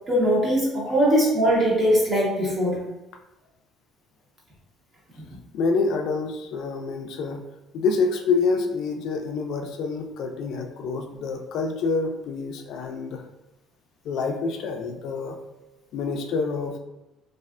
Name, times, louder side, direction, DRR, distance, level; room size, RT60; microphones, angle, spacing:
voice 1, 0.1-2.8, equal, 30° right, -5 dB, 0.8 m, -21 dB
voice 2, 5.5-7.4 7.7-13.2 14.0-15.4 15.9-16.8, left 4 dB, 65° left, 4 dB, 0.4 m, -27 dB
3.1 x 2.4 x 2.4 m, 0.94 s
cardioid pair, 150°, 0 cm